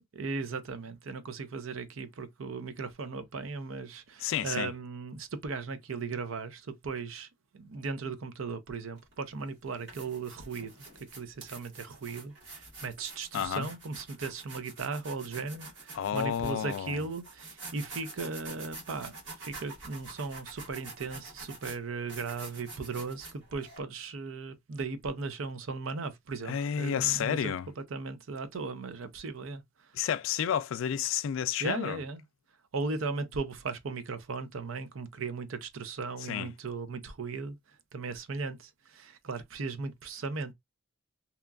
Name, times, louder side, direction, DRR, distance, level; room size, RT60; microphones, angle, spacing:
voice 1, 0.2-7.3 7.5-10.7 11.1-27.5 27.9-29.6 31.6-32.2 32.7-37.6 37.9-40.5, right 4 dB, 90° right, 0.6 m, -37 dB
voice 2, 4.2-4.7 13.3-13.7 15.9-17.0 26.5-27.7 29.9-32.0 36.2-36.5, left 9 dB, 80° left, 0.3 m, -31 dB
sound 1, 9.0-9.1 9.7-23.8, right 3 dB, 60° right, 1.5 m, -47 dB
2.8 x 2.4 x 2.3 m
head